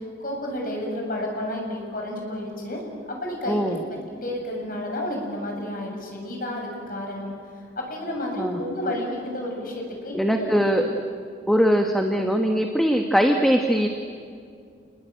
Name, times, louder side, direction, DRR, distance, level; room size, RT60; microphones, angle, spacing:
voice 1, 0.2-3.8 4.2-7.3 7.8-10.6, left 1 dB, 50° left, 1 dB, 7.3 m, -31 dB
voice 2, 3.5-3.8 8.4-8.6 10.1-10.9 11.5-13.9, equal, ahead, 3 dB, 1.3 m, -21 dB
29.5 x 20.5 x 9.2 m, 2.3 s
head